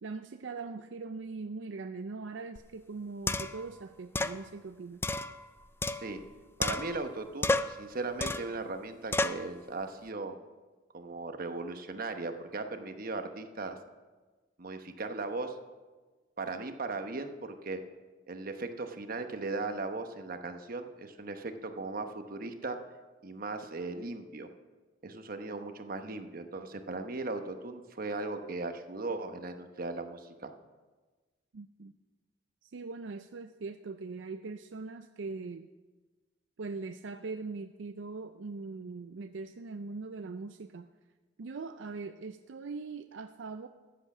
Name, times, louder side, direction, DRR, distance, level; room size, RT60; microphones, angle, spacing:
voice 1, 0.0-5.1 31.5-31.9 32.6-35.7 36.6-40.9 41.4-43.7, right 4 dB, 80° right, 8 dB, 0.5 m, -41 dB
sound 1, 2.6-2.7 3.3-3.7 4.2-4.4 5.0-6.3 6.6-7.1 7.4-7.8 8.2-8.6 9.1-9.5, left 2 dB, 15° left, 0.4 m, -31 dB
voice 2, 6.6-10.3 10.9-13.8 14.6-15.6 16.4-17.8 18.3-22.8 23.2-24.5 25.0-30.5, right 3 dB, 50° right, 7 dB, 1.0 m, -38 dB
14.0 x 8.2 x 6.0 m, 1.3 s
head